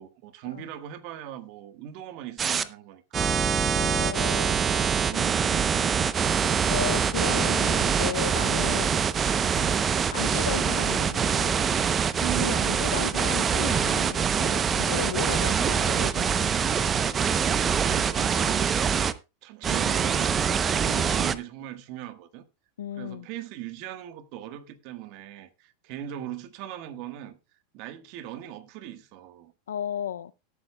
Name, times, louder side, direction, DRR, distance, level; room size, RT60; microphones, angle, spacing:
voice 1, 0.0-3.5 4.8-6.4 12.2-12.9 17.5-19.0 19.4-22.4 22.9-27.4 27.7-29.5, right 12 dB, 55° right, 1.4 m, -39 dB
sound 1, 2.4-2.6 3.1-19.1 19.6-21.3, right 7 dB, 25° right, 0.7 m, -24 dB
voice 2, 3.7-4.6 6.7-8.9 9.5-9.8 10.1-11.7 12.4-16.5 22.8-23.3 29.7-30.3, left 9 dB, 90° left, 0.5 m, -34 dB
17.5 x 8.7 x 2.3 m
hypercardioid pair, 110°, 0 cm